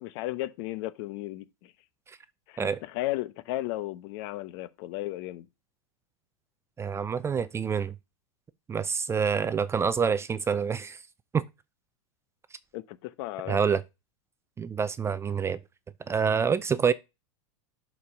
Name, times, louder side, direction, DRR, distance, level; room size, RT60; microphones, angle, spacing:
voice 1, 0.0-1.7 2.5-5.5 12.7-13.6, left 16 dB, 55° left, 0.9 m, -35 dB
voice 2, 6.8-7.9 8.7-11.0 11.3-11.4 13.5-13.8 14.6-15.6 16.1-16.9, right 6 dB, 15° right, 0.4 m, -27 dB
6.9 x 4.5 x 5.3 m
hypercardioid pair, 120°, 17 cm